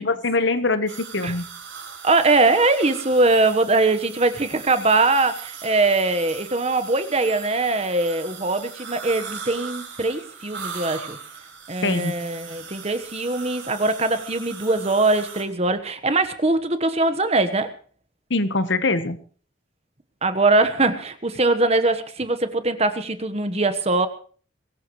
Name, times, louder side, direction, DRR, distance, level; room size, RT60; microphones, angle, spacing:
voice 1, 0.0-1.5 11.8-12.1 18.3-19.2, left 3 dB, 65° left, 11 dB, 1.2 m, -23 dB
sound 1, 0.9-15.4, right 6 dB, 70° right, 5.2 m, -39 dB
voice 2, 2.0-11.2 11.7-17.7 20.2-24.1, right 2 dB, 30° right, 10 dB, 1.2 m, -21 dB
22.5 x 18.0 x 3.2 m, 0.42 s
head